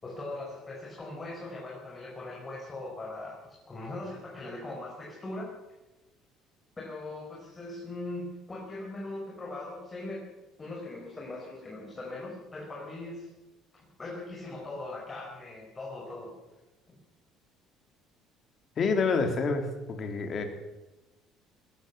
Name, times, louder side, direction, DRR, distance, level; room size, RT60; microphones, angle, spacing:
voice 1, 0.0-5.5 6.8-10.2 10.6-13.3 13.7-16.3, left 2 dB, 20° left, -2 dB, 5.0 m, -40 dB
voice 2, 18.8-20.4, left 4 dB, 35° left, 5 dB, 3.5 m, -28 dB
20.5 x 14.5 x 9.4 m, 1.0 s
cardioid pair, 145°, 0 cm